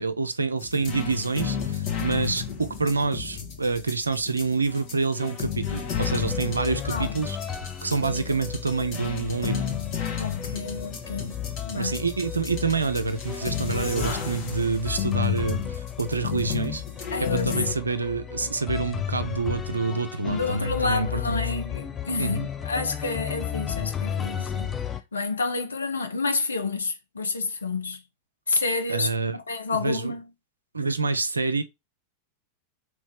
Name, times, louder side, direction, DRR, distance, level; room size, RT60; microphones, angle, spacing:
voice 1, 0.0-7.4 7.8-9.7 11.7-16.8 17.2-21.4 22.2-22.5 28.9-29.4 29.7-30.1 30.7-31.6, right 4 dB, 80° right, 0.4 m, -27 dB
sound 1, 0.6-17.7, left 8 dB, 45° left, 1.5 m, -33 dB
sound 2, 6.0-25.0, left 9 dB, 20° left, 0.4 m, -34 dB
voice 2, 6.5-7.2 10.2-11.4 11.7-12.0 17.1-17.6 18.4-18.5 20.2-24.7 25.1-28.0 28.5-29.1 29.5-30.3, left 3 dB, 75° left, 0.6 m, -29 dB
3.1 x 3.1 x 3.3 m
figure-of-eight pair, 90°, 0 cm